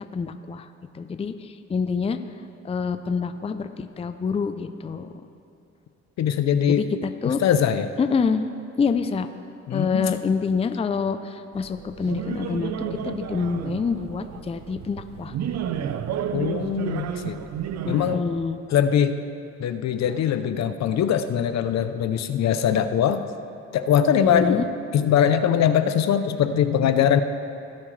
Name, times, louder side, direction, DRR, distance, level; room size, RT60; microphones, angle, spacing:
voice 1, 0.1-0.7 0.9-2.2 2.6-5.1 6.7-7.4 8.0-8.5 8.8-9.3 9.7-12.7 13.0-15.3 17.9-18.6 24.2-24.7, left 5 dB, 20° left, 9 dB, 0.4 m, -26 dB
voice 2, 6.2-6.9 7.2-7.9 9.7-10.2 16.3-17.4 17.9-18.2 18.7-19.2 19.6-23.2 23.7-24.7 24.9-27.2, left 9 dB, 65° left, 10 dB, 0.6 m, -22 dB
sound 1, 11.5-18.2, right 8 dB, 60° right, 0.6 m, -31 dB
17.5 x 7.4 x 3.2 m, 2.8 s
cardioid pair, 90°, 30 cm